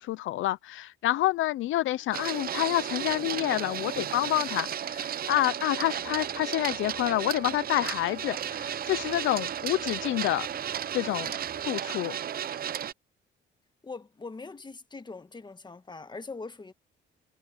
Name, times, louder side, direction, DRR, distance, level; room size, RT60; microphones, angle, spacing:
voice 1, 0.0-10.5 10.9-11.3 11.7-12.2, left 15 dB, 80° left, 0.7 m, -28 dB
Printer, 2.1-12.9, right 9 dB, 50° right, 0.7 m, -34 dB
sound 1, 6.0-11.7, right 1 dB, 5° right, 2.4 m, -55 dB
voice 2, 13.8-16.7, left 3 dB, 20° left, 1.6 m, -42 dB
cardioid pair, 90°, 20 cm